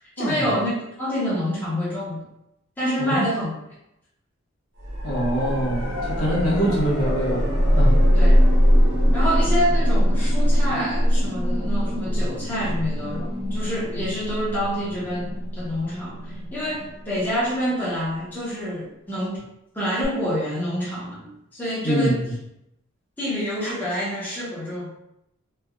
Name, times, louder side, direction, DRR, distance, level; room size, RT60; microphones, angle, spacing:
voice 1, 0.2-0.7 1.0-2.2 2.8-3.5 8.1-8.4 9.1-19.5 19.7-22.2 23.2-24.9, equal, 10° left, -9 dB, 0.7 m, -27 dB
sound 1, 4.8-17.7 20.0-20.1, equal, 75° right, 0.9 m, -22 dB
voice 2, 5.0-7.5 7.7-8.0 21.8-22.2, equal, 90° left, -6 dB, 1.1 m, -24 dB
3.3 x 2.1 x 2.3 m, 0.83 s
head